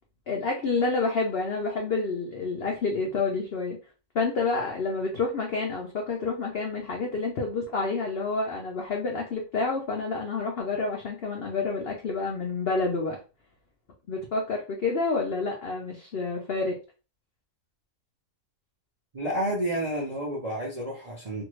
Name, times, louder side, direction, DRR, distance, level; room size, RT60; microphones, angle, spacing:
voice 1, 0.3-3.8 4.1-13.2 14.1-16.8, left 3 dB, 85° left, 1 dB, 0.5 m, -28 dB
voice 2, 19.1-21.4, right 1 dB, 45° right, -4 dB, 0.4 m, -30 dB
2.6 x 2.5 x 3.1 m, 0.33 s
omnidirectional pair, 1.7 m